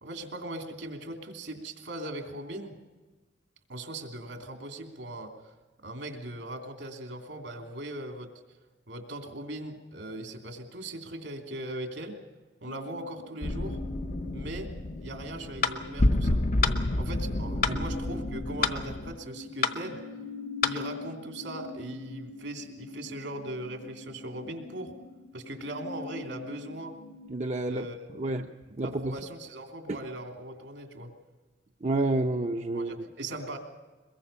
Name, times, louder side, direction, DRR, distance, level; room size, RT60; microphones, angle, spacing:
voice 1, 0.0-2.8 3.7-5.3 5.8-8.3 8.9-12.2 12.6-13.8 14.3-14.7 15.0-16.4 17.0-20.0 20.6-24.9 25.3-27.0 27.7-28.5 28.8-31.1 32.7-33.6, right 1 dB, 80° right, 4 dB, 3.0 m, -39 dB
sound 1, 12.7-27.3, left 2 dB, 70° left, 1.4 m, -43 dB
sound 2, 13.4-19.2, left 1 dB, 40° left, 0.6 m, -30 dB
sound 3, 15.6-15.8 16.6-16.8 17.6-17.8 18.6-18.8 19.6-19.8 20.6-20.8, left 5 dB, 55° left, 1.2 m, -27 dB
voice 2, 27.3-27.9 28.1-28.5 28.8-29.1 29.9-30.0 31.8-33.1, right 2 dB, 40° right, 4 dB, 0.7 m, -29 dB
22.5 x 22.0 x 5.7 m, 1.3 s
head